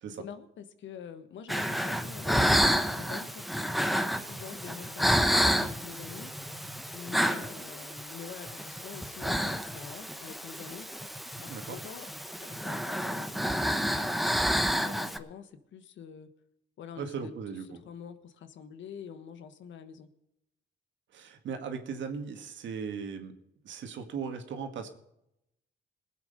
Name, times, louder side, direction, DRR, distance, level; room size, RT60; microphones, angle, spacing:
voice 1, 0.2-3.5 4.1-10.9 11.4-12.1 12.4-16.3 16.8-17.3 17.7-20.1, left 7 dB, 70° left, 11 dB, 1.3 m, -46 dB
sound 1, 1.5-15.2, equal, ahead, 1.0 m, -30 dB
voice 2, 17.0-17.6 21.1-23.3 23.6-24.9, right 6 dB, 70° right, 6 dB, 2.0 m, -37 dB
20.0 x 8.1 x 5.3 m, 0.83 s
cardioid pair, 90°, 20 cm